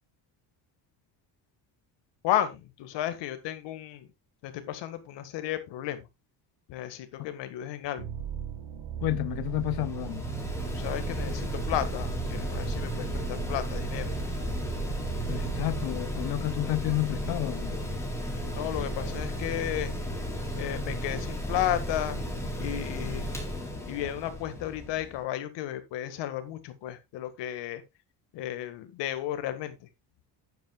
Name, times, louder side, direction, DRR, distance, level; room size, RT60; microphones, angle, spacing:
voice 1, 2.2-4.1 4.4-6.1 6.7-8.1 10.7-14.1 18.5-19.9 20.5-22.2 22.6-23.3 23.9-27.8 28.3-29.9, left 12 dB, 75° left, 1.8 m, -33 dB
sound 1, 8.0-15.8, right 9 dB, 80° right, 2.7 m, -37 dB
voice 2, 9.0-10.2 15.3-17.8, left 18 dB, 60° left, 0.5 m, -31 dB
Mechanical fan, 9.0-25.2, equal, 5° left, 2.5 m, -34 dB
12.0 x 9.3 x 2.4 m
cardioid pair, 175°, 43 cm